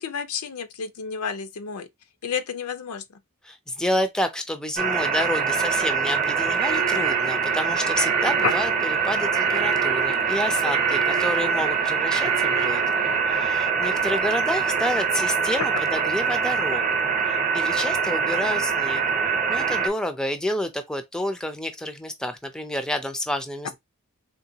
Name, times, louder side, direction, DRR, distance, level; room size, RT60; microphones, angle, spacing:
voice 1, 0.0-1.9 2.2-3.2 8.0-8.1 8.4-8.5 10.6-10.8 18.2-18.6, left 6 dB, 80° left, 0.5 m, -31 dB
voice 2, 3.4-12.8 13.3-16.8 17.3-19.0 19.5-23.8, left 1 dB, 5° left, 0.4 m, -29 dB
sound 1, 4.8-19.9, right 6 dB, 35° right, 0.7 m, -24 dB
sound 2, 6.6-13.2, right 7 dB, 90° right, 0.5 m, -29 dB
3.8 x 2.2 x 2.7 m
head